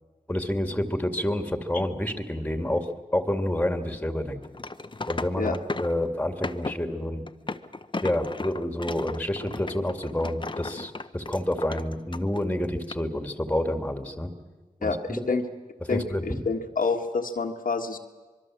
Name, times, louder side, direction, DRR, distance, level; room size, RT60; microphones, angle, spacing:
voice 1, 0.3-4.4 5.1-7.2 8.0-14.3 14.8-15.4 15.9-16.4, left 1 dB, 10° left, 7 dB, 2.2 m, -28 dB
sound 1, 4.4-6.0 6.4-6.8 7.3-12.5 12.8-12.9, left 3 dB, 35° left, 0.9 m, -35 dB
voice 2, 14.8-15.4 15.9-18.0, left 4 dB, 75° left, 3 dB, 1.6 m, -28 dB
24.5 x 22.5 x 7.5 m, 1.3 s
wide cardioid pair, 60°, 14 cm